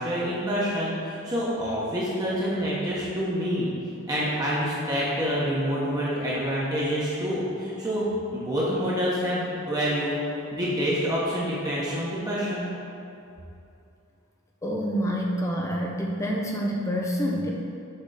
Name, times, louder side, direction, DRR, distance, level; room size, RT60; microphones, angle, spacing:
voice 1, 0.0-3.7 4.1-8.1 8.3-10.2 10.5-12.7, equal, 15° right, -7 dB, 0.9 m, -27 dB
voice 2, 14.6-17.5, equal, 15° left, -1 dB, 0.4 m, -27 dB
6.5 x 3.5 x 4.9 m, 2.7 s
head